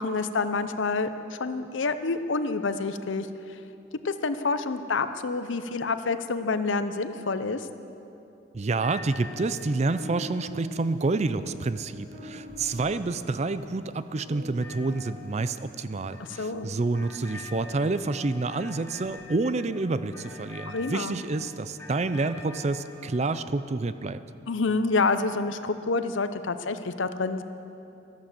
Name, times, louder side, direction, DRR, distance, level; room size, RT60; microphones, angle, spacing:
voice 1, 0.0-3.3 4.0-7.7 16.2-16.7 20.7-21.2 24.5-27.4, left 3 dB, 80° left, 11 dB, 0.7 m, -28 dB
voice 2, 8.5-24.2, right 3 dB, 35° right, 13 dB, 0.4 m, -28 dB
sound 1, 8.8-23.2, left 3 dB, 10° left, 1.5 m, -47 dB
sound 2, 10.0-18.6, left 1 dB, 80° right, 2.1 m, -47 dB
14.0 x 11.5 x 7.4 m, 2.8 s
head